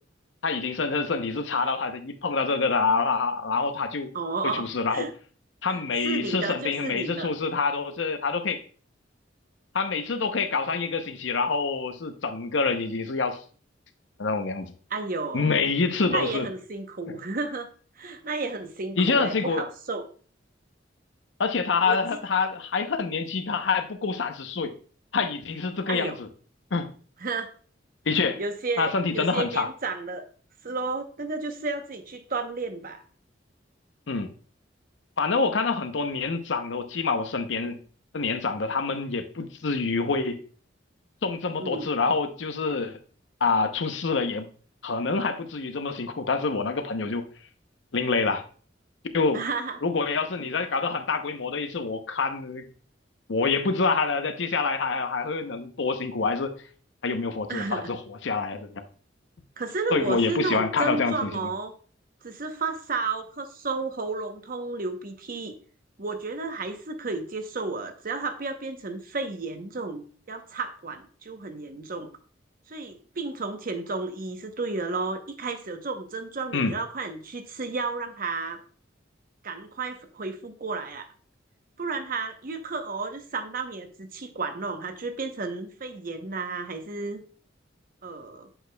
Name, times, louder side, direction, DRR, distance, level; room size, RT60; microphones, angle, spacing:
voice 1, 0.4-4.1 4.4-5.1 5.6-8.6 9.7-13.4 14.2-14.7 15.3-16.5 17.1-17.2 19.0-19.6 21.4-24.7 25.1-26.3 26.7-26.9 28.1-28.4 28.8-29.7 34.1-34.3 35.2-37.8 38.1-40.4 41.2-43.0 43.4-44.5 44.8-47.2 47.9-48.4 49.1-49.4 49.8-52.7 53.3-56.5 57.0-58.8 59.9-61.5 76.5-76.8, left 4 dB, 75° left, 8 dB, 0.7 m, -26 dB
voice 2, 4.1-5.1 5.7-5.8 6.0-7.3 14.9-15.5 16.1-20.1 21.9-22.2 25.9-26.2 27.2-27.5 28.4-30.2 30.6-33.0 41.6-41.9 49.3-49.8 57.5-57.9 59.6-61.7 62.2-65.5 66.0-72.1 72.7-78.6 79.4-81.1 81.8-87.2 88.0-88.5, right 3 dB, 50° right, 7 dB, 0.8 m, -32 dB
7.8 x 6.2 x 2.2 m, 0.42 s
head